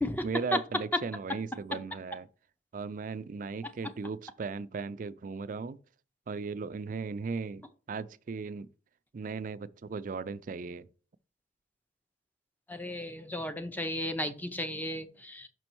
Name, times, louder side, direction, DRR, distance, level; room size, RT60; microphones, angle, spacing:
voice 1, 0.2-2.3 2.7-5.8 6.3-8.7 9.1-10.9, right 4 dB, 50° right, 0.4 m, -37 dB
voice 2, 12.7-15.5, left 1 dB, 10° left, 0.6 m, -35 dB
6.1 x 5.2 x 4.5 m
head